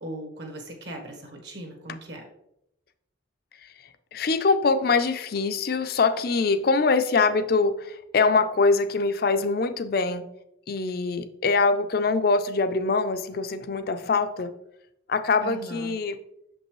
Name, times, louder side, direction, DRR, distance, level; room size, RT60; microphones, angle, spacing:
voice 1, 0.0-2.2 15.4-15.9, right 1 dB, 60° right, 2 dB, 1.3 m, -39 dB
voice 2, 3.6-10.2 10.7-14.5 15.1-16.2, left 4 dB, 50° left, 11 dB, 0.4 m, -24 dB
6.7 x 5.3 x 3.1 m, 0.81 s
head